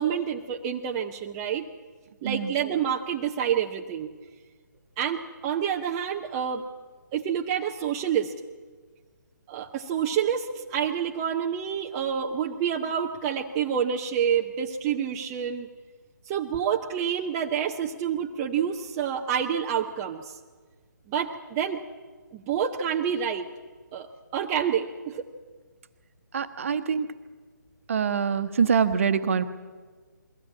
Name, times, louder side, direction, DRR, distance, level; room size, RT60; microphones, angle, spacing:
voice 1, 0.0-1.7 2.2-4.1 5.0-6.6 7.1-8.4 9.5-15.7 16.3-20.4 21.1-21.8 22.3-23.5 23.9-25.2 26.7-26.8, right 8 dB, 20° right, 2 dB, 0.7 m, -28 dB
voice 2, 26.3-27.1 27.9-29.4, right 6 dB, 45° right, 10 dB, 1.2 m, -24 dB
22.5 x 16.5 x 8.6 m, 1.5 s
figure-of-eight pair, 140°, 10 cm